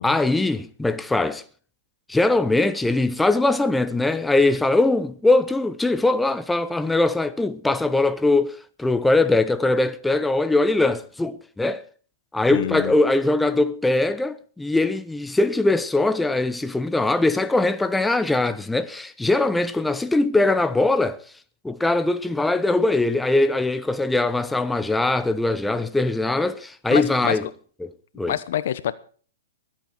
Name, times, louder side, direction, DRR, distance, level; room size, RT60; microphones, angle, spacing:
voice 1, 0.0-1.4 2.1-11.8 12.3-21.2 21.6-27.5 27.8-27.9 28.2-28.3, left 2 dB, 5° left, 0.7 m, -21 dB
voice 2, 12.5-13.0 26.9-27.4 28.3-28.9, left 11 dB, 65° left, 1.0 m, -26 dB
22.5 x 8.6 x 4.6 m
hypercardioid pair, 140°, 0 cm